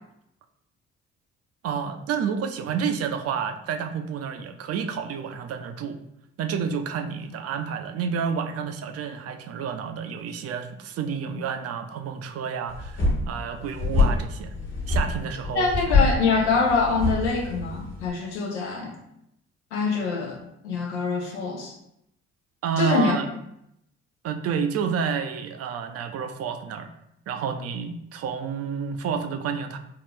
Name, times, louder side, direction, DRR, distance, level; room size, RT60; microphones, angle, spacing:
voice 1, 1.6-6.0 6.4-14.5 14.9-15.7 16.4-16.5 22.6-23.3 24.2-26.9 27.3-29.8, right 7 dB, 45° right, 7 dB, 0.5 m, -29 dB
sound 1, 12.7-18.1, left 3 dB, 35° left, 1.3 m, -25 dB
voice 2, 15.5-18.9 19.7-20.4 20.6-21.8 22.8-23.1, left 4 dB, 90° left, 1 dB, 0.5 m, -24 dB
3.7 x 2.3 x 2.8 m, 0.79 s
hypercardioid pair, 45°, 33 cm